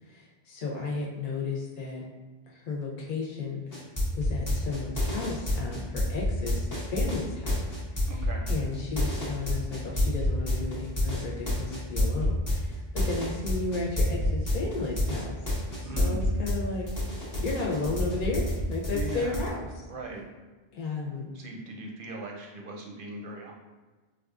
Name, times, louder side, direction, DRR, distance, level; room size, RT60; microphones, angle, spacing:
voice 1, 0.0-2.1 2.5-3.8 4.1-7.6 7.9-15.4 15.8-16.9 17.4-19.6 20.7-21.3, left 3 dB, 55° left, -3 dB, 0.8 m, -33 dB
sound 1, 3.7-16.6 16.9-19.5, left 1 dB, 25° left, 0.5 m, -28 dB
voice 2, 8.1-8.5 15.8-16.2 18.9-19.4 19.9-20.3 21.3-23.5, right 2 dB, 60° right, 0 dB, 0.6 m, -39 dB
4.2 x 2.3 x 2.4 m, 1.3 s
omnidirectional pair, 1.1 m